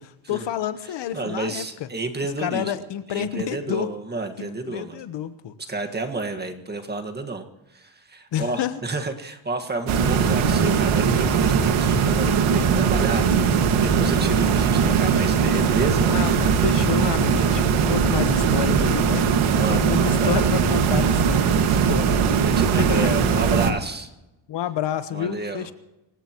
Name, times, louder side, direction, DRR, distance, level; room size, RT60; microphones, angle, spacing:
voice 1, 0.0-1.6 2.4-3.9 4.4-5.5 8.3-8.8 16.1-17.6 17.9-19.3 19.7-22.2 22.8-23.1 24.5-25.7, left 10 dB, 60° left, 11 dB, 1.2 m, -29 dB
voice 2, 1.1-2.7 3.1-5.0 5.6-7.4 7.7-13.2 13.8-16.1 19.5-20.4 22.4-24.1 25.1-25.7, right 3 dB, 20° right, 5 dB, 1.7 m, -30 dB
sound 1, 9.9-23.7, right 6 dB, 75° right, 2.0 m, -20 dB
26.5 x 16.5 x 3.1 m, 0.96 s
cardioid pair, 140°, 49 cm